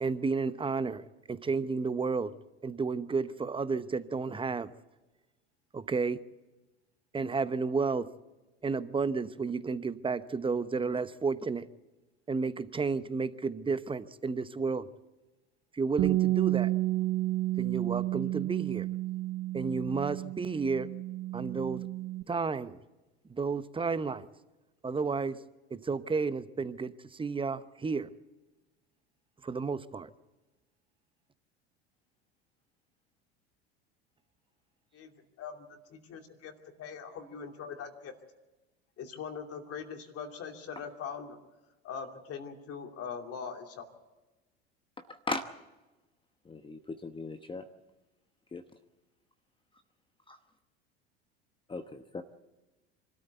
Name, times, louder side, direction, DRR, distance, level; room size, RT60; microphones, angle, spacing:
voice 1, 0.0-2.3 2.6-4.7 5.7-6.2 7.1-8.1 8.6-11.7 12.3-14.9 15.7-16.7 17.6-18.9 19.5-20.9 21.3-21.9 22.3-22.8 23.3-24.3 24.8-25.4 25.7-28.1 29.4-30.1, right 4 dB, 15° right, 0.9 m, -32 dB
Bass guitar, 16.0-22.2, right 16 dB, 45° right, 0.6 m, -31 dB
voice 2, 35.9-36.5 36.8-38.1 39.0-41.4 41.8-43.9, left 6 dB, 45° left, 2.8 m, -41 dB
voice 3, 45.1-45.4 46.5-47.6 48.5-48.6 51.7-52.2, left 3 dB, 15° left, 1.0 m, -37 dB
24.5 x 13.5 x 8.2 m
hypercardioid pair, 80°, 33 cm